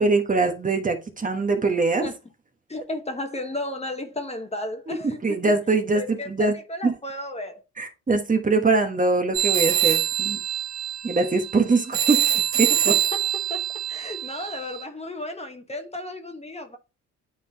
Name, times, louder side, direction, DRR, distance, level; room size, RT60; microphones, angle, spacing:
voice 1, 0.0-2.1 4.9-6.5 6.8-6.9 7.8-10.4 11.0-12.2 12.6-12.9, right 3 dB, 25° right, 1.2 m, -23 dB
voice 2, 2.7-5.4 5.9-7.6 12.7-13.0 13.5-13.6 13.9-16.8, left 1 dB, 20° left, 1.1 m, -33 dB
sound 1, 9.3-14.8, right 11 dB, 85° right, 1.9 m, -24 dB
9.3 x 3.7 x 2.8 m
cardioid pair, 90°, 30 cm